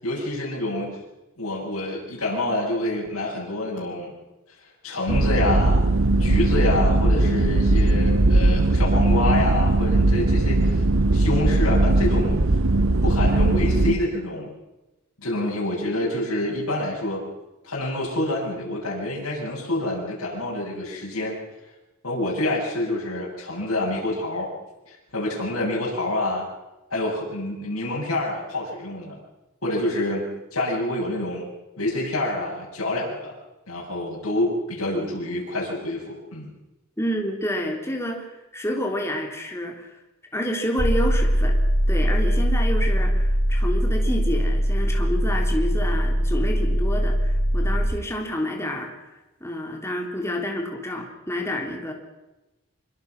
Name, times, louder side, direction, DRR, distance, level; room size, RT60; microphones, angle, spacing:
voice 1, 0.0-1.0 1.4-4.1 4.8-5.8 6.2-10.8 11.1-12.4 13.0-14.5 15.2-17.2 17.6-21.4 22.0-24.5 24.9-26.5 26.9-29.2 29.6-31.5 31.8-33.3 33.7-36.5, left 1 dB, 80° left, -5 dB, 7.5 m, -27 dB
sound 1, 5.1-13.9, right 2 dB, 65° right, 0.9 m, -19 dB
voice 2, 37.0-38.3 38.5-39.9 40.3-41.6 41.9-48.9 49.4-51.9, equal, 10° left, 1 dB, 3.6 m, -29 dB
sound 2, 40.8-47.9, equal, 40° left, 2.8 m, -21 dB
26.0 x 24.0 x 6.2 m, 1.0 s
head